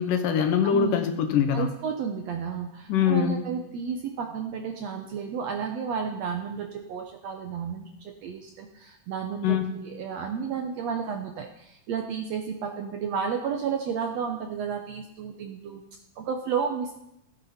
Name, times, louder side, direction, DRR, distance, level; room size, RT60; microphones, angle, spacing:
voice 1, 0.0-1.7 2.9-3.4 9.4-9.8, left 8 dB, 75° left, 7 dB, 2.6 m, -23 dB
voice 2, 0.6-1.1 1.5-15.8 16.2-16.9, right 6 dB, 70° right, 4 dB, 1.7 m, -32 dB
15.5 x 9.6 x 4.3 m, 0.82 s
omnidirectional pair, 3.9 m